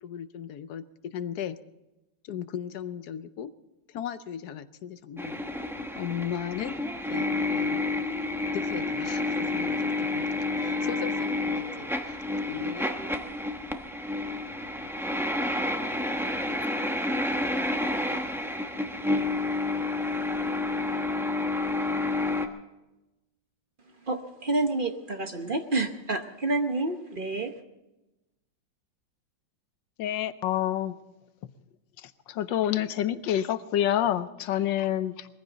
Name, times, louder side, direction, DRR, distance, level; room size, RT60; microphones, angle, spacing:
voice 1, 0.0-1.6 2.2-3.5 3.9-5.4 6.0-6.8 7.1-7.8 8.5-10.3 10.6-12.2 12.5-12.9, left 9 dB, 65° left, 1.1 m, -37 dB
sound 1, 5.2-22.5, left 2 dB, ahead, 0.6 m, -29 dB
voice 2, 24.1-27.5, right 2 dB, 40° right, 0.8 m, -29 dB
voice 3, 30.0-30.9 32.3-35.3, left 11 dB, 85° left, 1.4 m, -27 dB
21.0 x 15.5 x 4.0 m
omnidirectional pair, 2.0 m